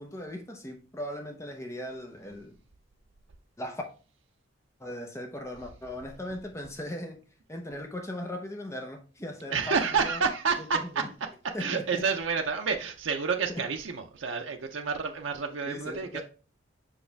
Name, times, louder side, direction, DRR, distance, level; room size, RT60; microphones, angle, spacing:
voice 1, 0.0-2.6 3.6-3.8 4.8-7.2 7.5-10.2 10.7-11.1 11.5-12.0 13.5-13.6 15.7-16.2, left 1 dB, 15° left, 0.7 m, -38 dB
voice 2, 9.5-11.0 11.6-16.2, right 5 dB, 80° right, 0.6 m, -29 dB
5.8 x 4.9 x 3.3 m
head